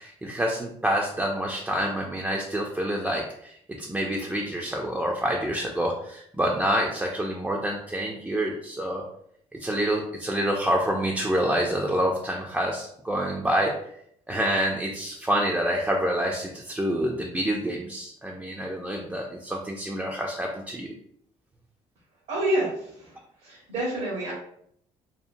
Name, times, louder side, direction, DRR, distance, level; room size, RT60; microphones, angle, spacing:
voice 1, 0.0-9.1 9.5-13.7 14.3-20.9, right 1 dB, 10° right, -1 dB, 0.3 m, -27 dB
voice 2, 22.3-24.3, right 1 dB, 85° right, -6 dB, 0.9 m, -28 dB
2.8 x 2.0 x 2.5 m, 0.69 s
cardioid pair, 95°, 13 cm